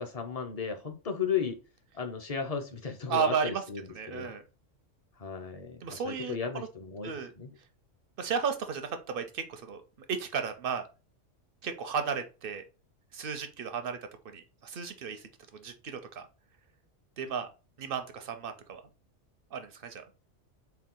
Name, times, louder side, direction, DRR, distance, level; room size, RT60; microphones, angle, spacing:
voice 1, 0.0-1.6 1.9-4.3 5.2-7.5, left 6 dB, 40° left, 0.6 m, -35 dB
voice 2, 3.1-3.6 4.0-4.4 5.8-6.7 7.0-7.3 8.2-9.8 10.1-10.9 11.6-12.6 13.1-14.0 14.2-16.3 17.2-17.5 17.8-18.8 19.5-20.0, right 6 dB, 60° right, 0.6 m, -34 dB
4.4 x 2.3 x 3.7 m
omnidirectional pair, 1.3 m